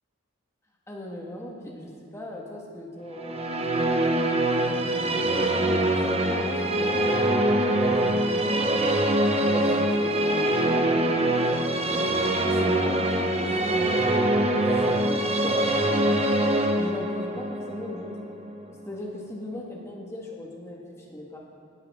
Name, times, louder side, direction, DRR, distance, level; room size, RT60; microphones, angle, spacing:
voice 1, 0.9-16.2 16.7-18.1 18.8-21.4, left 1 dB, 15° left, -2 dB, 1.6 m, -38 dB
Musical instrument, 3.2-18.6, right 1 dB, 30° right, 0.8 m, -24 dB
18.0 x 11.5 x 3.6 m, 2.6 s
head